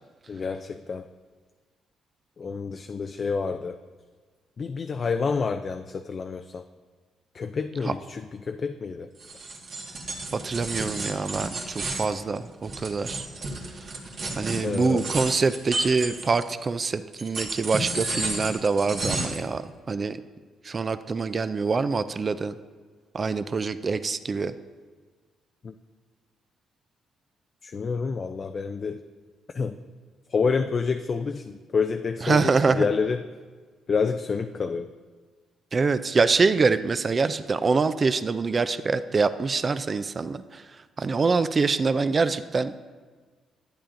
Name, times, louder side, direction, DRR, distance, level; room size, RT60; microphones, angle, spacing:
voice 1, 0.3-1.0 2.4-3.8 4.6-6.6 7.3-9.1 14.6-15.1 25.6-25.7 27.6-29.0 29.5-29.7 30.3-33.2 33.9-34.9, left 5 dB, 45° left, 7 dB, 0.3 m, -28 dB
sound 1, 9.2-16.6 17.1-19.5, right 2 dB, 55° right, 1.5 m, -32 dB
voice 2, 10.3-13.3 14.4-19.6 19.9-20.2 20.6-22.5 23.1-24.5 32.2-32.9 35.7-40.6 41.0-42.7, right 4 dB, 35° right, 12 dB, 0.3 m, -25 dB
11.0 x 8.9 x 2.5 m, 1.5 s
cardioid pair, 90°, 0 cm